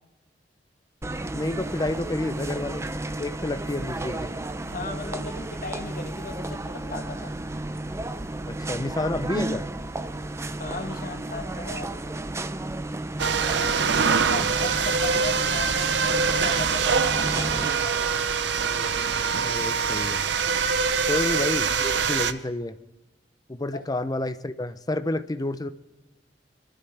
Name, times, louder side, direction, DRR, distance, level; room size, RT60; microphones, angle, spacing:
sound 1, 1.0-17.7, right 2 dB, 15° right, 0.5 m, -33 dB
voice 1, 1.3-2.9 3.2-4.3 8.5-9.6 13.5-14.5 19.4-20.2 21.1-22.7 23.5-25.7, left 2 dB, 20° left, 11 dB, 0.6 m, -30 dB
voice 2, 4.6-7.3 10.6-12.2 14.1-18.2 21.1-21.2 23.7-23.8, left 3 dB, 55° left, 5 dB, 1.6 m, -37 dB
sound 2, 13.2-22.3, right 5 dB, 85° right, 0.7 m, -24 dB
26.5 x 12.5 x 3.4 m, 1.0 s
head